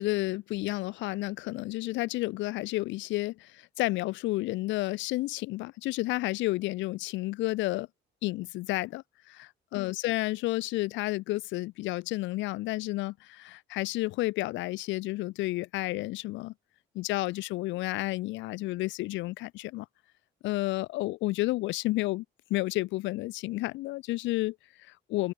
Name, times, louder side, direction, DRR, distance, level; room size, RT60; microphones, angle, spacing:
voice 1, 0.0-7.9 8.2-16.5 16.9-19.9 20.4-22.2 22.5-25.3, left 19 dB, 85° left, 0.5 m, -31 dB
open air
cardioid pair, 115°, 19 cm